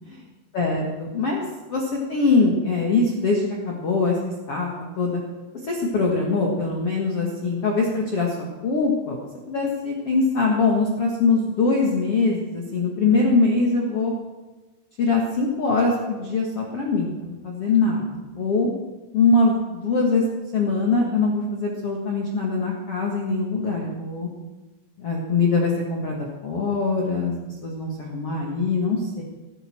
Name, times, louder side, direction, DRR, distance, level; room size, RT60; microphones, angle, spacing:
voice 1, 0.5-1.4 1.7-4.7 5.0-5.2 5.7-8.3 8.6-9.2 9.5-14.1 15.0-18.7 19.1-20.2 20.5-24.3 25.0-27.3 27.6-29.2, left 3 dB, 75° left, -1 dB, 1.3 m, -22 dB
17.5 x 16.0 x 4.6 m, 1.2 s
omnidirectional pair, 5.9 m